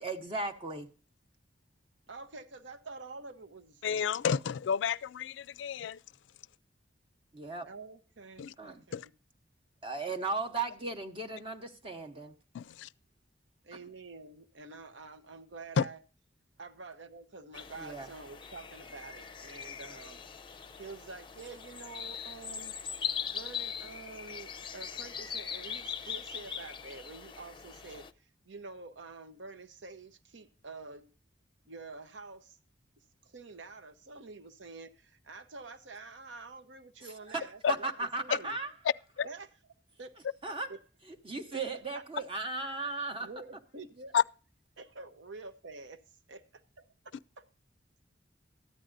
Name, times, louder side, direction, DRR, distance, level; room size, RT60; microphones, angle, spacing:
voice 1, 0.0-0.9 7.3-7.7 8.6-8.8 9.8-12.3 17.8-18.1 37.0-37.4 37.7-38.8 40.4-40.7 41.2-43.3, right 3 dB, 30° right, 0.9 m, -36 dB
voice 2, 2.1-4.2 7.7-9.1 13.6-16.0 16.6-20.2 20.8-22.7 23.3-31.0 31.7-32.6 33.2-38.6 39.2-39.5 40.0-40.1 40.7-40.8 41.5-41.6 41.9-42.0 43.2-44.2 44.8-46.0 46.3-46.4 47.4-47.5, right 3 dB, 85° right, 0.9 m, -48 dB
voice 3, 3.8-6.0 8.4-8.5 8.9-9.0 12.5-12.9 15.8-15.9 37.6-37.7 44.1-44.2, left 7 dB, 75° left, 0.3 m, -30 dB
sound 1, 17.5-28.1, left 7 dB, 30° left, 0.5 m, -41 dB
13.5 x 10.0 x 2.5 m
head